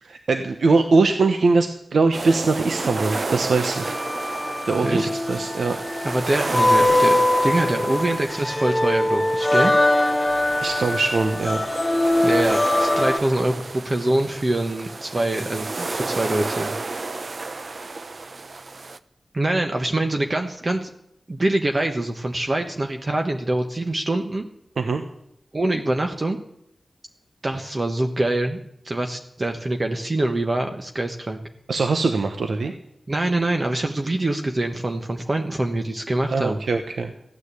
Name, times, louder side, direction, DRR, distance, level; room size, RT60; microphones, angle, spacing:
voice 1, 0.0-3.9 4.7-5.8 10.6-11.6 24.8-25.0 31.7-32.7 36.3-37.1, right 3 dB, 85° right, 6 dB, 1.1 m, -21 dB
sound 1, 2.1-19.0, right 3 dB, 50° right, 0.7 m, -31 dB
sound 2, 3.7-13.2, left 1 dB, 15° left, 1.8 m, -22 dB
voice 2, 6.0-9.7 12.2-16.7 19.3-20.9 21.3-24.5 25.5-26.4 27.4-28.6 28.8-31.4 33.1-36.6, right 1 dB, 35° right, 4 dB, 1.2 m, -24 dB
15.0 x 9.7 x 8.4 m, 0.77 s
wide cardioid pair, 100°, 0 cm